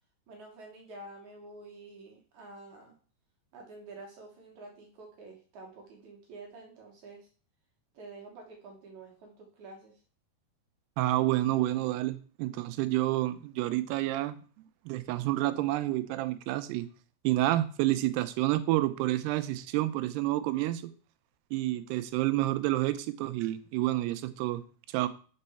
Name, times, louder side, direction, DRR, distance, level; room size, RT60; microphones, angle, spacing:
voice 1, 0.3-2.9 3.5-7.3 7.9-10.0, right 2 dB, 65° right, 1 dB, 1.9 m, -49 dB
voice 2, 11.0-14.4 14.9-16.9 17.2-20.8 21.5-24.6 24.9-25.1, right 16 dB, 90° right, 12 dB, 2.6 m, -29 dB
5.4 x 5.3 x 5.4 m, 0.39 s
omnidirectional pair, 4.6 m